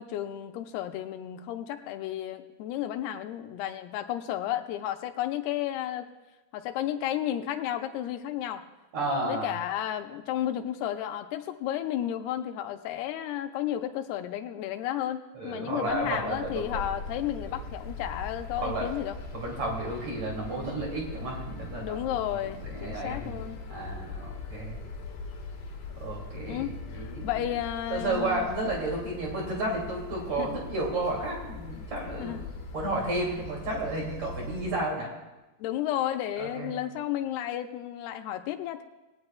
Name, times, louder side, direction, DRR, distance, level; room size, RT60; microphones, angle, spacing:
voice 1, 0.0-6.1 6.5-8.6 9.3-19.2 21.8-23.6 26.5-28.5 30.4-30.6 32.2-32.4 35.6-38.8, left 11 dB, 85° left, 7 dB, 2.7 m, -32 dB
voice 2, 8.9-9.5 15.4-16.8 18.6-18.9 19.3-22.0 22.6-23.4 23.7-24.8 26.0-27.3 27.9-32.4 32.7-35.1 36.4-36.7, right 2 dB, 45° right, -2 dB, 3.5 m, -32 dB
sound 1, 15.9-34.8, left 3 dB, 55° left, 2.7 m, -41 dB
19.5 x 18.0 x 2.3 m, 1.1 s
omnidirectional pair, 4.7 m